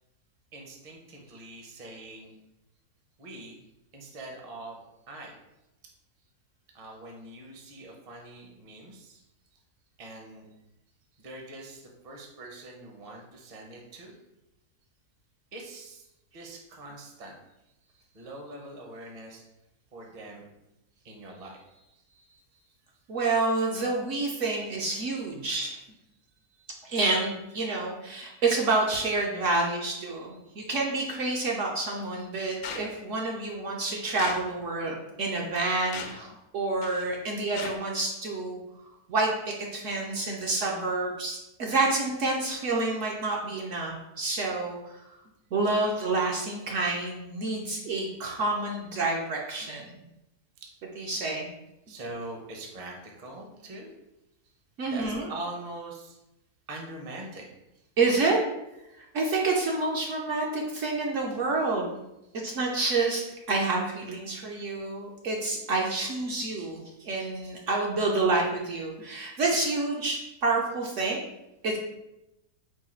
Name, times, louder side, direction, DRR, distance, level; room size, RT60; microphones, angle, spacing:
voice 1, 0.5-2.3 3.2-3.6 3.9-4.8 5.1-5.4 6.7-9.2 10.0-10.5 11.2-14.2 15.5-16.1 16.3-17.4 17.9-19.4 19.9-20.5 21.0-22.7 26.3-26.9 30.2-30.5 50.6-50.7 51.9-53.9 54.8-56.2 56.7-57.5 62.2-62.4, right 2 dB, 35° right, 0 dB, 0.6 m, -43 dB
voice 2, 23.1-25.8 26.8-38.6 39.1-44.9 45.5-49.9 51.0-51.5 54.8-55.3 58.0-58.4 59.1-61.9 62.4-71.2 71.6-71.8, right 3 dB, 65° right, -1 dB, 0.9 m, -28 dB
sound 1, 32.6-32.9 34.2-34.4 35.2-35.4 35.9-36.2 36.8-37.1 37.5-37.7, left 6 dB, 70° left, 0.9 m, -38 dB
4.7 x 2.3 x 4.3 m, 0.90 s
omnidirectional pair, 1.6 m